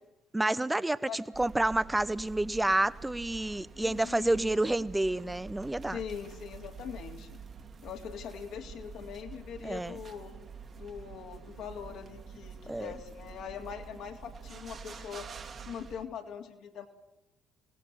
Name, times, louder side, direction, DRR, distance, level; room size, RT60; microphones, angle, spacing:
voice 1, 0.3-6.0 9.6-10.0 12.7-12.9, right 1 dB, 10° right, 1.0 m, -29 dB
sound 1, 1.3-16.0, right 5 dB, 40° right, 2.5 m, -47 dB
voice 2, 3.8-4.9 5.9-7.4 7.8-10.3 10.8-15.3 15.6-16.9, left 7 dB, 60° left, 3.2 m, -42 dB
27.5 x 19.0 x 7.9 m
figure-of-eight pair, 50°, 0 cm